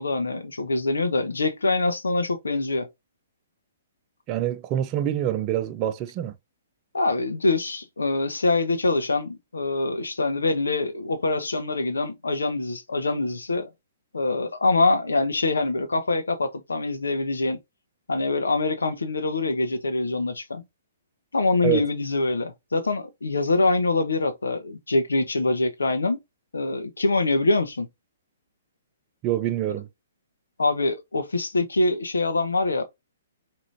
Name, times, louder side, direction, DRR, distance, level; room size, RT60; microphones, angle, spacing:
voice 1, 0.0-2.9 6.9-13.7 14.1-17.6 18.1-20.6 21.3-26.2 26.5-27.9 30.6-32.8, left 2 dB, 80° left, 1.0 m, -24 dB
voice 2, 4.3-6.3 21.6-21.8 29.2-29.9, right 12 dB, 30° right, 0.6 m, -25 dB
5.0 x 3.0 x 2.7 m
figure-of-eight pair, 125°, 0 cm